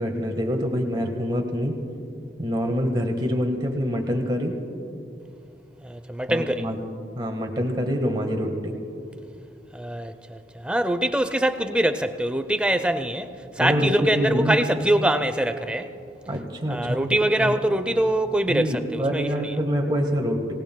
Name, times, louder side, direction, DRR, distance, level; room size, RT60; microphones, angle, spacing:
voice 1, 0.0-1.8 2.4-4.6 6.3-6.8 7.1-8.8 13.6-14.6 16.3-17.5 18.5-20.5, equal, 25° right, 1.4 m, -25 dB
voice 2, 5.8-6.7 9.7-15.9 16.7-19.5, right 1 dB, 5° right, 0.5 m, -24 dB
25.0 x 18.5 x 2.2 m
head